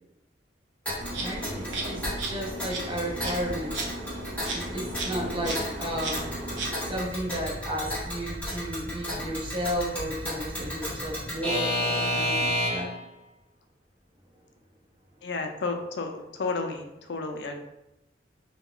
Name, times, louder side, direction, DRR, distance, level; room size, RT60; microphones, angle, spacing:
Alarm / Clock, 0.9-13.0, left 1 dB, 10° left, 0.9 m, -32 dB
Insect, 1.0-7.0, right 2 dB, 80° right, 0.7 m, -35 dB
voice 1, 1.2-3.8 4.5-6.3 6.8-12.9, equal, 30° right, -2 dB, 0.6 m, -33 dB
voice 2, 15.2-17.6, left 3 dB, 70° left, 4 dB, 0.4 m, -32 dB
2.3 x 2.1 x 3.6 m, 0.88 s
head